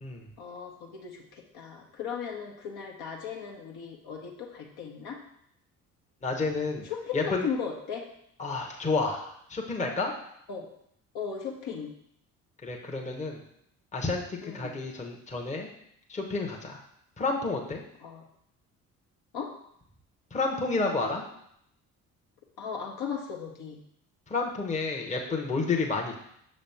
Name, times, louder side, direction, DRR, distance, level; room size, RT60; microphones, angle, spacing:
voice 1, 0.4-5.2 6.8-8.0 10.5-10.7 11.1-11.9 14.4-14.7 18.0-18.3 19.3-19.5 22.6-23.8, left 6 dB, 50° left, 0 dB, 1.1 m, -37 dB
voice 2, 6.2-6.8 7.1-7.5 8.4-10.1 12.6-13.4 13.9-15.7 16.1-16.8 17.2-17.8 20.3-21.2 24.3-26.2, left 3 dB, 15° left, 1 dB, 1.0 m, -30 dB
6.8 x 3.1 x 5.7 m, 0.72 s
figure-of-eight pair, 45°, 46 cm